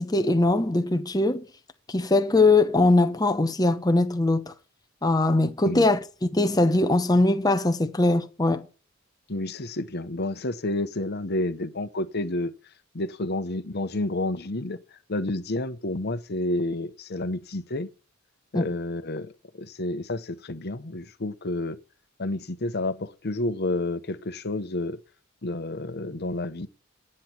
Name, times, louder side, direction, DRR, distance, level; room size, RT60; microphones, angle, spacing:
voice 1, 0.0-1.4 1.9-4.5 5.0-8.7 18.5-18.7, left 2 dB, 20° left, 0.8 m, -21 dB
voice 2, 9.3-12.5 12.9-17.9 18.5-19.3 19.6-21.8 22.2-25.0 25.4-26.7, left 2 dB, 50° left, 1.0 m, -30 dB
10.0 x 8.6 x 4.5 m
head